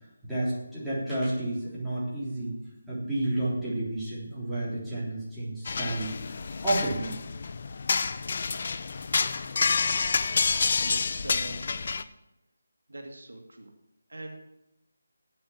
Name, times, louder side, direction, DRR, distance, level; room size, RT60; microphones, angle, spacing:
voice 1, 0.2-2.6 2.9-6.3 6.6-7.1, right 1 dB, 5° right, -10 dB, 3.4 m, -31 dB
sound 1, 5.6-12.0, left 4 dB, 50° left, 0.6 m, -28 dB
voice 2, 10.8-11.7 12.9-13.7 14.1-14.4, right 1 dB, 75° right, 3 dB, 2.0 m, -42 dB
8.7 x 7.6 x 7.3 m, 0.89 s
figure-of-eight pair, 160°, 0 cm